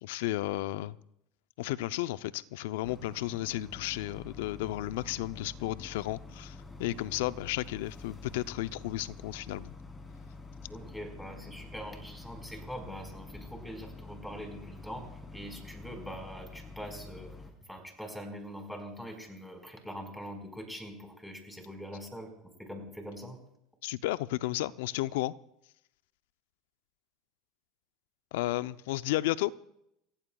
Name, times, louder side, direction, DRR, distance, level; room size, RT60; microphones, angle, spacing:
voice 1, 0.0-1.0 1.6-9.7 23.8-25.3 28.3-29.5, left 16 dB, 75° left, 0.5 m, -33 dB
Boat Water vehicle, 2.8-17.5, left 3 dB, 20° left, 3.3 m, -47 dB
voice 2, 10.7-17.3 17.7-23.4, equal, 5° left, 4.8 m, -43 dB
29.5 x 15.5 x 2.3 m
hypercardioid pair, 90°, 0 cm